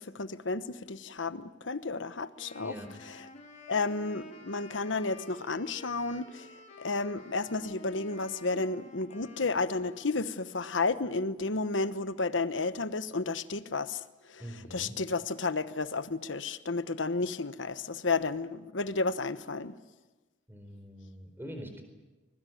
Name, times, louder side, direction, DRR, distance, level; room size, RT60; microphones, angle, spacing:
voice 1, 0.0-2.8 3.1-3.2 3.7-14.0 14.3-14.4 14.7-19.8, left 3 dB, 85° left, 13 dB, 1.1 m, -32 dB
Wind instrument woodwind instrument, 2.4-10.5, left 2 dB, 35° left, 3.5 m, -50 dB
voice 2, 2.6-2.9 14.4-15.0 20.5-21.8, equal, 10° right, 6 dB, 4.3 m, -44 dB
25.5 x 21.5 x 9.4 m, 1.2 s
head